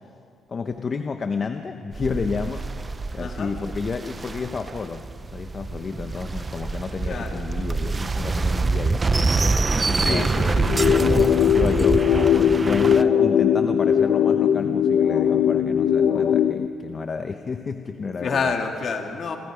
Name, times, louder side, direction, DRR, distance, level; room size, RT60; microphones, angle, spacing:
voice 1, 0.5-9.5 9.9-18.5, left 5 dB, 40° left, 7 dB, 1.0 m, -31 dB
sound 1, 1.9-13.0, right 3 dB, 25° right, 0.6 m, -25 dB
voice 2, 3.2-3.5 7.0-7.5 9.9-10.7 18.2-19.4, left 5 dB, 55° left, 3 dB, 2.6 m, -28 dB
sound 2, 10.7-16.7, left 8 dB, 70° left, 0.7 m, -19 dB
26.5 x 24.5 x 5.2 m, 2.3 s
cardioid pair, 90°, 0 cm